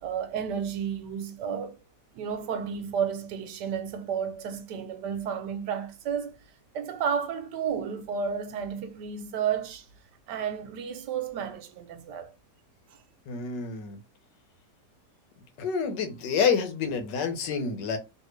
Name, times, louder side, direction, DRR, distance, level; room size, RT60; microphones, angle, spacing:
voice 1, 0.0-1.8 2.1-6.4 6.7-9.9 10.3-12.3, right 7 dB, 85° right, 1.3 m, -32 dB
voice 2, 13.3-14.0 15.6-18.0, left 6 dB, 85° left, 1.5 m, -28 dB
3.3 x 2.6 x 3.1 m
omnidirectional pair, 1.8 m